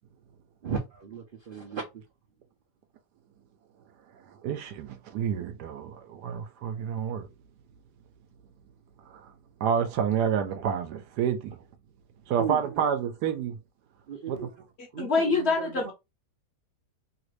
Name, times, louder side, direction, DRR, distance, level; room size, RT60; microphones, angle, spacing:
voice 1, 0.6-1.8 12.4-12.6 14.1-14.5 14.9-15.7, right 6 dB, 55° right, 0.5 m, -35 dB
voice 2, 4.4-7.3 9.1-9.2 9.6-11.6 12.3-13.6 14.3-14.5, right 8 dB, 75° right, 1.2 m, -29 dB
voice 3, 15.0-15.9, left 4 dB, 50° left, 1.0 m, -25 dB
3.2 x 2.5 x 3.1 m
omnidirectional pair, 1.8 m